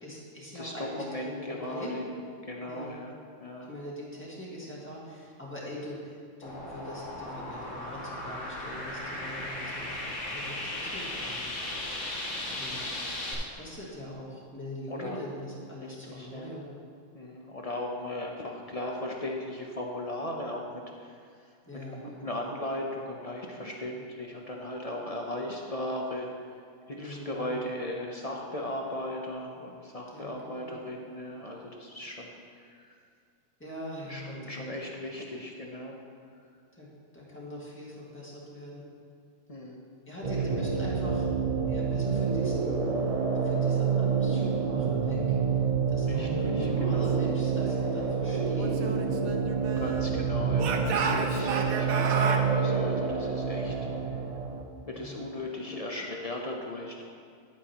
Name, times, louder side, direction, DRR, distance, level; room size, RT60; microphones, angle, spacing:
voice 1, 0.0-2.0 2.7-3.0 3.7-11.5 12.5-12.8 13.3-16.7 21.7-22.3 27.0-27.6 30.1-30.7 33.6-34.6 36.8-36.9 37.1-38.9 40.1-41.2 41.7-42.8 43.4-45.4 45.9-49.2 54.9-55.2, left 1 dB, 10° left, -6 dB, 1.7 m, -42 dB
voice 2, 0.5-2.0 2.5-3.7 12.2-12.9 14.9-15.2 15.8-16.5 17.1-21.2 22.0-26.3 26.9-32.9 34.1-36.0 39.5-39.8 40.3-40.4 46.1-47.1 49.8-53.7 55.0-57.0, left 1 dB, 40° left, 0 dB, 0.5 m, -37 dB
sound 1, 6.4-13.3, left 1 dB, 65° left, 1.7 m, -36 dB
sound 2, 40.2-54.6, right 5 dB, 40° right, 0.5 m, -28 dB
Speech / Shout, 48.6-50.1 50.6-52.5, right 5 dB, 85° right, 1.1 m, -32 dB
10.5 x 8.8 x 2.9 m, 2.2 s
omnidirectional pair, 1.4 m